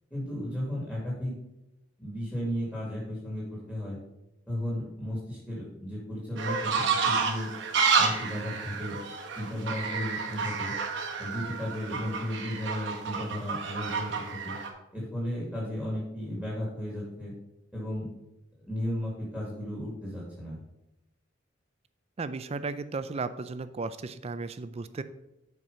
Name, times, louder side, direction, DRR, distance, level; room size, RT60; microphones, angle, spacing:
voice 1, 0.1-1.3 2.0-4.0 4.5-7.5 7.9-9.0 9.4-10.7 11.2-14.5 14.9-17.3 17.7-18.1 18.7-20.6, equal, 5° left, -6 dB, 2.4 m, -34 dB
sound 1, 6.4-14.7, right 5 dB, 75° right, 1.3 m, -30 dB
voice 2, 22.2-25.0, right 3 dB, 35° right, 12 dB, 0.4 m, -35 dB
7.4 x 4.7 x 5.5 m, 0.89 s
head